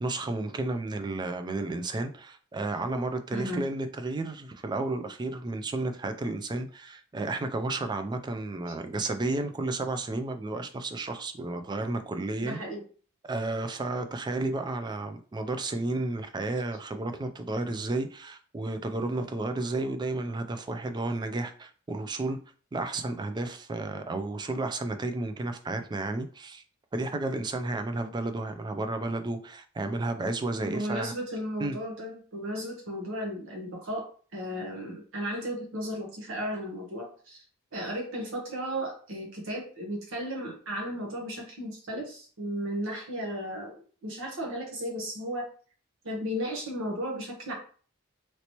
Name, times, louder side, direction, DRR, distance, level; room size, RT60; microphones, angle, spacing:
voice 1, 0.0-12.6 13.3-22.4 22.7-26.6 26.9-31.1 31.6-31.8, right 2 dB, 20° right, 0.3 m, -32 dB
voice 2, 3.3-3.6 12.4-12.8 30.6-37.4 37.7-43.7 44.0-45.5 46.0-47.5, equal, 65° right, 0.9 m, -35 dB
3.1 x 2.9 x 2.9 m
head